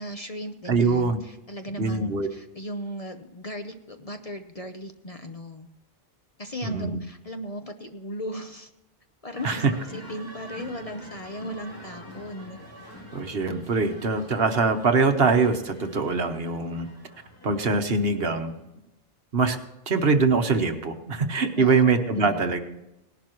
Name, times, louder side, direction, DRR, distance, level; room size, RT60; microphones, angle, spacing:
voice 1, 0.0-5.7 6.4-8.7 9.2-12.6 21.5-21.8 22.1-22.6, equal, 35° left, 6 dB, 0.7 m, -37 dB
voice 2, 0.7-1.2 1.8-2.3 6.6-6.9 9.4-9.6 13.1-16.9 17.4-18.5 19.3-19.6 19.9-22.6, right 4 dB, 60° right, 7 dB, 1.3 m, -23 dB
sound 1, 9.3-18.3, equal, 20° left, 3.1 m, -46 dB
18.5 x 11.5 x 3.0 m, 0.92 s
omnidirectional pair, 1.2 m